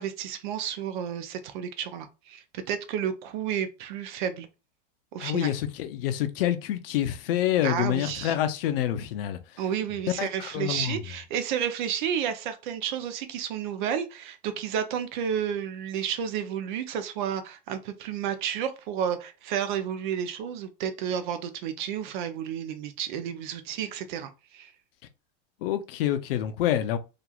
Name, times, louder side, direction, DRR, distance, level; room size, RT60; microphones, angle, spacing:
voice 1, 0.0-4.5 5.1-5.5 7.6-8.3 9.6-24.7, right 8 dB, 55° right, 0.5 m, -31 dB
voice 2, 5.2-9.4 10.2-11.0 25.6-27.0, left 11 dB, 70° left, 0.5 m, -27 dB
3.0 x 2.4 x 2.3 m
supercardioid pair, 160°, 29 cm